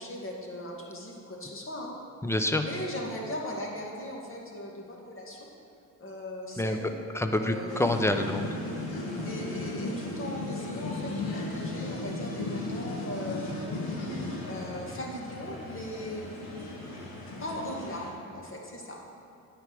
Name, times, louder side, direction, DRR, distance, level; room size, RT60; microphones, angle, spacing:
voice 1, 0.0-2.0 2.6-5.5 6.0-6.9 7.4-7.7 9.2-13.4 14.4-16.2 17.4-19.0, left 1 dB, 30° left, -1 dB, 2.0 m, -38 dB
voice 2, 2.2-2.6 6.6-6.8 7.1-8.5, left 1 dB, 5° left, 6 dB, 0.7 m, -27 dB
sound 1, 7.7-18.1, left 2 dB, 65° left, 2.2 m, -36 dB
9.3 x 5.0 x 7.7 m, 2.5 s
supercardioid pair, 75°, 39 cm